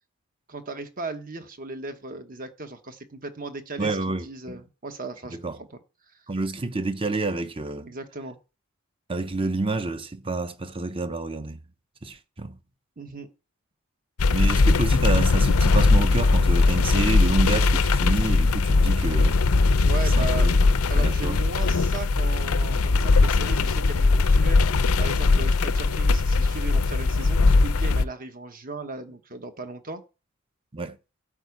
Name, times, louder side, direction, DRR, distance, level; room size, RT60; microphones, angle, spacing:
voice 1, 0.5-5.4 5.7-5.8 7.8-8.4 13.0-13.3 19.8-20.5 20.9-24.6 25.0-30.0, right 3 dB, 40° right, 1.2 m, -37 dB
voice 2, 3.8-4.6 5.3-5.6 6.3-7.9 9.1-11.6 12.0-12.6 14.3-19.4 20.2-20.6 20.9-21.4 30.7-31.0, right 2 dB, 25° right, 0.8 m, -28 dB
sound 1, 14.2-28.0, left 3 dB, 75° left, 0.6 m, -20 dB
12.5 x 4.7 x 8.4 m
head